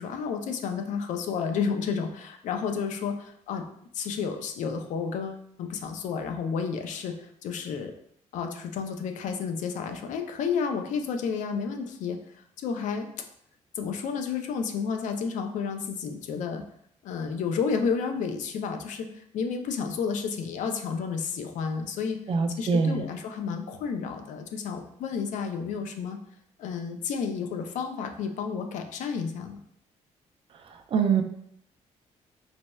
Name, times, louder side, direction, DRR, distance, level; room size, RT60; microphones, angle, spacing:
voice 1, 0.0-3.6 3.9-7.9 8.3-12.2 12.6-13.1 13.8-16.6 17.0-22.2 22.6-26.2 26.6-29.6, left 6 dB, 80° left, 5 dB, 0.4 m, -31 dB
voice 2, 22.3-23.0 30.9-31.2, right 5 dB, 45° right, 6 dB, 0.4 m, -23 dB
4.0 x 2.0 x 2.2 m, 0.69 s
cardioid pair, 120°, 13 cm